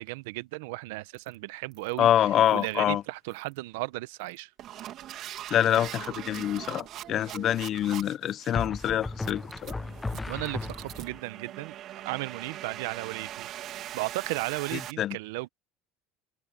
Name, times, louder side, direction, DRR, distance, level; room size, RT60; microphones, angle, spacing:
voice 1, 0.0-4.5 10.3-13.5 13.9-15.5, right 21 dB, 80° right, 0.9 m, -35 dB
sound 1, 1.1-1.3 1.7-2.0 2.4-2.8 3.3-3.6 4.2-14.9, right 12 dB, 55° right, 2.7 m, -42 dB
voice 2, 2.0-3.0 5.5-9.7 15.0-15.2, left 11 dB, 50° left, 0.8 m, -26 dB
sound 2, 5.9-6.3 8.5-11.2, left 3 dB, 15° left, 0.7 m, -36 dB
supercardioid pair, 85°, 0 cm